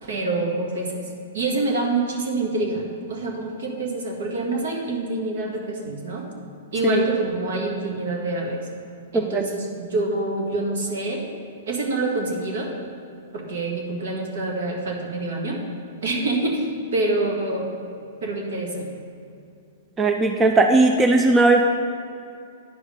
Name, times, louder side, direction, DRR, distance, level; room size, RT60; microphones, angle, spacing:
voice 1, 0.0-1.0 1.3-6.3 6.7-8.7 9.1-11.2 11.7-12.7 13.3-15.6 16.0-17.7 18.2-18.9, right 2 dB, 70° right, 0 dB, 1.8 m, -26 dB
voice 2, 9.1-9.5 20.0-21.6, right 3 dB, 20° right, 4 dB, 0.5 m, -18 dB
10.0 x 5.0 x 5.1 m, 2.6 s
hypercardioid pair, 120°, 0 cm